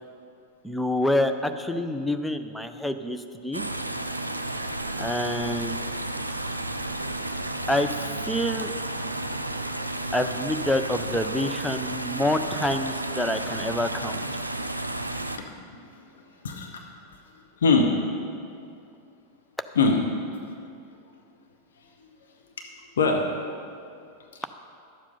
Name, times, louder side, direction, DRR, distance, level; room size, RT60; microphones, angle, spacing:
voice 1, 0.6-3.6 5.0-5.8 7.7-8.0 8.2-8.7 10.1-14.2, left 1 dB, 5° left, 7 dB, 0.6 m, -27 dB
sound 1, 3.5-15.4, right 2 dB, 85° right, 0.4 m, -32 dB
voice 2, 15.4-16.0 16.4-16.8 17.6-18.2 19.7-20.0 21.8-21.9 22.6-22.7 23.0-23.2 24.3-24.4, left 4 dB, 65° left, 2 dB, 1.0 m, -24 dB
11.5 x 7.3 x 5.3 m, 2.5 s
figure-of-eight pair, 90°, 0 cm